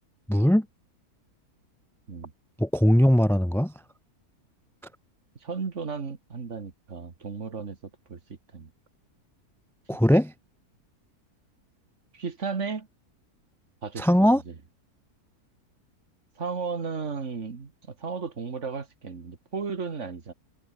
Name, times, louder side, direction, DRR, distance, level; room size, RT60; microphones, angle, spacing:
voice 1, 0.3-0.7 2.6-3.7 9.9-10.3 14.0-14.4, equal, ahead, 0.6 m, -20 dB
voice 2, 5.4-7.8 8.1-8.7 12.1-12.9 13.8-14.5 16.4-20.3, right 5 dB, 50° right, 2.2 m, -34 dB
omnidirectional pair, 1.6 m